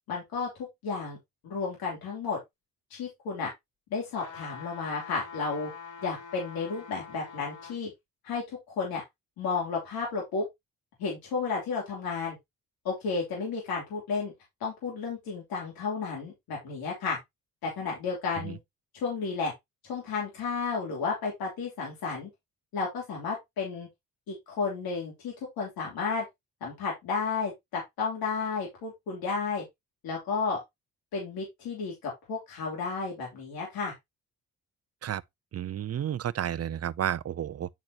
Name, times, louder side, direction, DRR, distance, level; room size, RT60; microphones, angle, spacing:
voice 1, 0.1-0.5 0.8-1.2 1.4-2.4 2.9-3.5 3.9-5.7 6.0-7.9 8.2-8.4 8.8-9.0 9.4-10.4 11.0-12.4 12.8-14.3 14.6-17.2 17.6-18.6 19.0-19.5 19.9-22.3 22.7-23.9 24.3-26.2 26.6-29.6 30.0-30.6 31.1-33.9, left 4 dB, 85° left, 3.1 m, -32 dB
sound 1, 4.1-7.8 8.3-8.4, left 5 dB, 55° left, 3.8 m, -45 dB
voice 2, 35.5-37.7, right 10 dB, 45° right, 0.5 m, -31 dB
10.5 x 4.2 x 2.9 m
cardioid pair, 70°, 36 cm